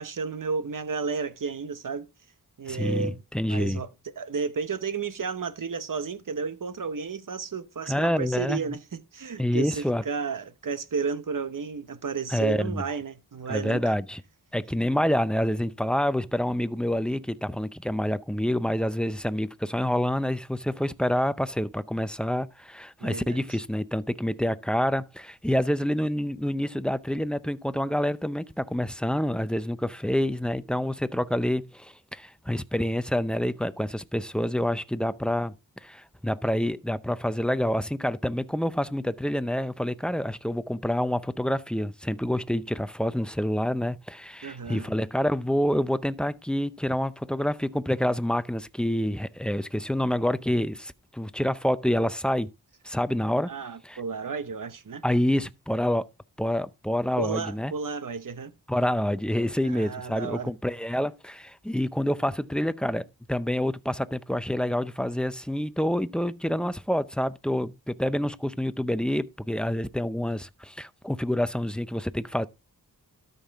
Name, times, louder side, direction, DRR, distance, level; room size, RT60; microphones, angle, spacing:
voice 1, 0.0-2.1 2.6-3.2 3.5-3.9 4.2-8.8 9.1-13.8 23.0-23.4 44.4-44.9 53.5-55.0 57.2-58.5 59.6-60.5, right 5 dB, 60° right, 1.0 m, -32 dB
voice 2, 2.7-3.8 7.9-8.6 9.4-10.0 12.3-12.8 13.5-14.2 14.5-35.5 35.8-52.5 52.8-53.5 53.8-54.0 55.0-56.1 56.4-57.7 58.7-72.5, equal, ahead, 0.6 m, -27 dB
12.5 x 5.5 x 3.5 m
wide cardioid pair, 65°, 37 cm